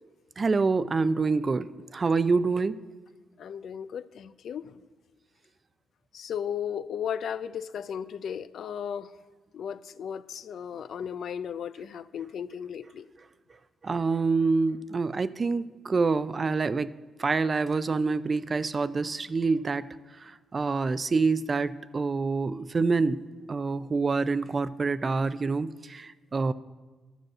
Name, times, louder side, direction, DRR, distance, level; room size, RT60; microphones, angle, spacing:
voice 1, 0.4-2.8 13.8-16.9 17.2-19.9 20.5-23.2 23.5-26.5, right 4 dB, 35° right, 15 dB, 0.4 m, -26 dB
voice 2, 3.4-4.7 6.1-9.1 9.5-13.1, left 8 dB, 65° left, 15 dB, 0.4 m, -35 dB
11.0 x 6.3 x 7.6 m, 1.3 s
cardioid pair, 85°, 0 cm